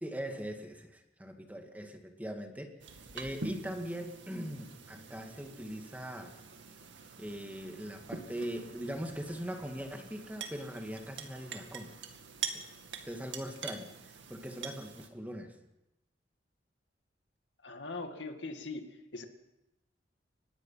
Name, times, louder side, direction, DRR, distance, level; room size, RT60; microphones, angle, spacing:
voice 1, 0.0-2.8 3.1-6.4 7.2-11.9 13.0-15.5, equal, 10° right, 4 dB, 2.2 m, -41 dB
sound 1, 2.8-15.1, right 5 dB, 85° right, 2.2 m, -45 dB
voice 2, 17.6-18.9 19.1-19.3, left 3 dB, 80° left, 5 dB, 2.3 m, -40 dB
25.0 x 20.5 x 5.8 m, 0.91 s
head